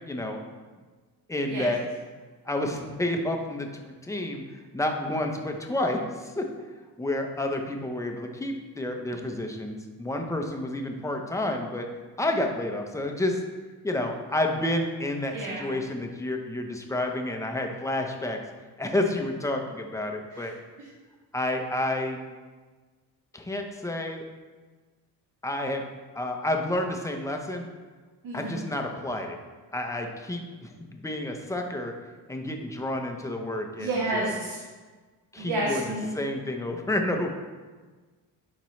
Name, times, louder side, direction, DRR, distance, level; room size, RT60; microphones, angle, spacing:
voice 1, 0.1-0.4 1.3-1.8 2.5-6.5 7.0-11.9 12.2-13.4 13.8-18.4 18.8-20.5 21.3-22.2 23.3-24.2 25.4-25.8 26.1-27.6 28.3-29.4 29.7-31.9 32.3-34.3 35.3-37.3, left 1 dB, 10° left, 3 dB, 0.7 m, -30 dB
voice 2, 15.3-15.8 20.3-20.5 28.2-28.6 33.8-34.6 35.4-36.1, right 2 dB, 60° right, -6 dB, 1.8 m, -30 dB
11.5 x 4.5 x 3.2 m, 1.4 s
cardioid pair, 125°, 37 cm